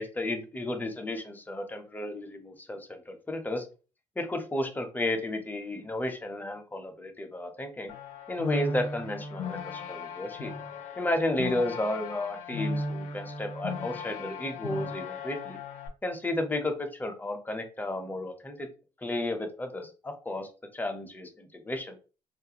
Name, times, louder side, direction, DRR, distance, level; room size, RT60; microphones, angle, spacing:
voice 1, 0.0-3.6 4.2-7.9 8.3-10.5 11.0-15.6 16.0-18.7 19.0-22.0, left 1 dB, 15° left, 5 dB, 0.6 m, -33 dB
sound 1, 7.9-15.9, left 2 dB, 75° left, 0.5 m, -36 dB
2.4 x 2.2 x 2.8 m, 0.34 s
cardioid pair, 90°, 13 cm